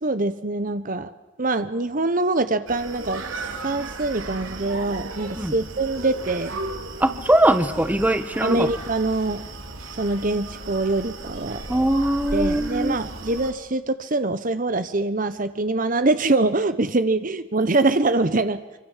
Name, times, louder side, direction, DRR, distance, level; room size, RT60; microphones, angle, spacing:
voice 1, 0.0-1.1 1.4-3.2 3.6-6.6 8.4-9.4 10.0-11.6 12.3-18.6, right 2 dB, 40° right, 12 dB, 1.0 m, -24 dB
Screaming, 2.7-13.5, right 2 dB, 75° right, 3.7 m, -35 dB
voice 2, 7.0-8.7 11.7-13.0, right 1 dB, 10° right, 10 dB, 1.3 m, -21 dB
26.0 x 25.0 x 7.4 m, 1.2 s
head